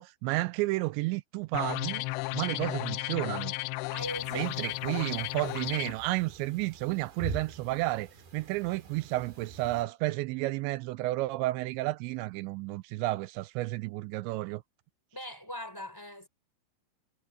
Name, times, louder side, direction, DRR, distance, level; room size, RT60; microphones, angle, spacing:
voice 1, 0.0-2.1 2.3-3.5 4.3-14.6, right 19 dB, 85° right, 2.7 m, -32 dB
sound 1, 1.5-5.9, left 22 dB, 90° left, 2.4 m, -34 dB
voice 2, 3.9-4.5 4.9-5.1 15.1-16.3, left 1 dB, 5° left, 3.9 m, -40 dB
sound 2, 4.0-9.9, right 4 dB, 60° right, 6.7 m, -45 dB
omnidirectional pair, 5.4 m